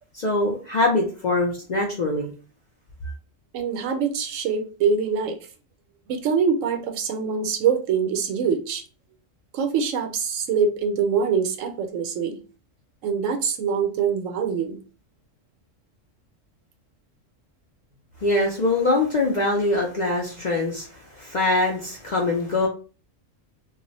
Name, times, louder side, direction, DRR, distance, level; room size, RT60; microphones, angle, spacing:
voice 1, 0.1-2.3 18.2-20.9 21.1-22.7, left 2 dB, 55° left, -1 dB, 0.5 m, -23 dB
voice 2, 3.5-5.5 6.1-8.8 9.5-12.4 13.0-14.8, right 6 dB, 90° right, 5 dB, 1.0 m, -24 dB
2.3 x 2.1 x 3.8 m, 0.37 s
omnidirectional pair, 1.3 m